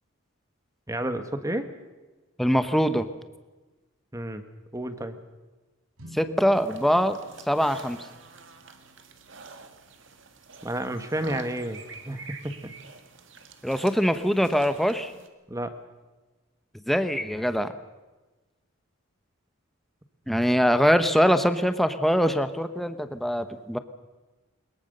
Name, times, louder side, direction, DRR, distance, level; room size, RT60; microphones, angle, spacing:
voice 1, 0.9-1.7 4.1-4.4 4.7-5.1 10.6-12.2 15.5-15.7, right 1 dB, 15° right, 9 dB, 1.4 m, -31 dB
voice 2, 2.4-3.1 6.1-7.2 7.5-8.1 13.6-15.1 16.9-17.7 20.3-23.8, equal, ahead, 10 dB, 0.9 m, -23 dB
sound 1, 6.0-12.4, left 1 dB, 85° right, 3.9 m, -52 dB
sound 2, 6.5-15.3, right 4 dB, 60° right, 2.0 m, -47 dB
22.5 x 21.5 x 6.7 m, 1.2 s
head